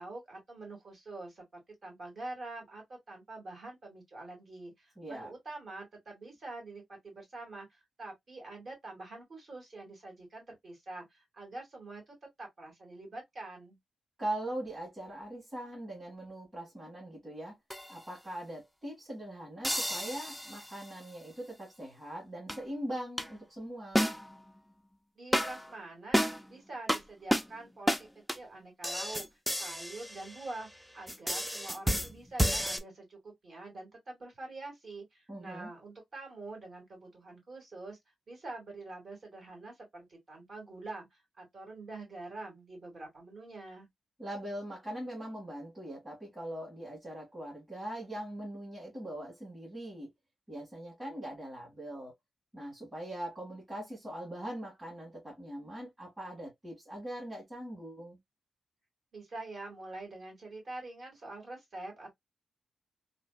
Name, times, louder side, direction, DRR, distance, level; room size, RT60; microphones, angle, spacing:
voice 1, 0.0-13.8 25.2-28.1 28.3-29.3 29.6-30.7 30.9-38.0 38.3-43.9 59.1-62.1, right 2 dB, 50° right, 2.2 m, -45 dB
voice 2, 5.0-5.3 14.2-17.6 17.9-24.0 35.3-35.7 44.2-50.1 50.5-52.1 52.5-58.2, right 1 dB, 20° right, 1.9 m, -41 dB
sound 1, 17.7-18.0 19.6-20.9 22.5-22.6 23.2-23.3 24.0-24.5 25.3-25.7 26.1-26.5 26.9-27.0 27.3-27.5 27.9-28.0 28.3-28.4 28.8-30.7 31.1-32.8, equal, ahead, 0.4 m, -31 dB
3.2 x 2.6 x 2.4 m
wide cardioid pair, 120°, 0 cm